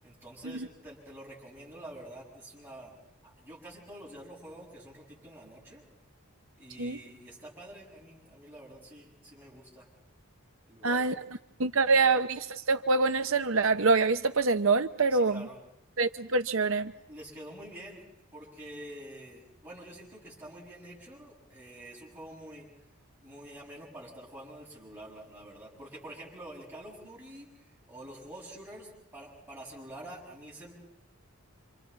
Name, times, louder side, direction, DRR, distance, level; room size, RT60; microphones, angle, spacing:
voice 1, 0.0-3.0 3.2-5.8 6.6-9.9 10.7-11.2 11.8-12.0 15.1-15.6 16.9-18.0 18.3-22.7 23.2-27.5 27.9-30.7, right 1 dB, 10° right, 6.8 m, -47 dB
voice 2, 10.8-11.1 11.6-15.4 16.0-16.9, right 4 dB, 65° right, 0.9 m, -25 dB
27.0 x 26.5 x 4.1 m
head